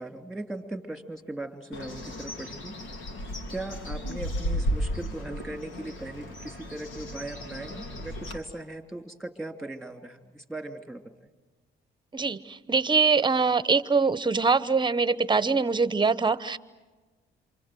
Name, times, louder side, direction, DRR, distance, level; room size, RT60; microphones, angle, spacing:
voice 1, 0.0-2.7 3.5-11.3, right 2 dB, ahead, 6 dB, 2.9 m, -39 dB
Bird, 1.7-8.4, equal, 85° left, 3.5 m, -34 dB
voice 2, 12.1-16.6, right 4 dB, 25° right, 16 dB, 1.0 m, -23 dB
28.0 x 26.0 x 7.7 m, 1.3 s
cardioid pair, 90°, 20 cm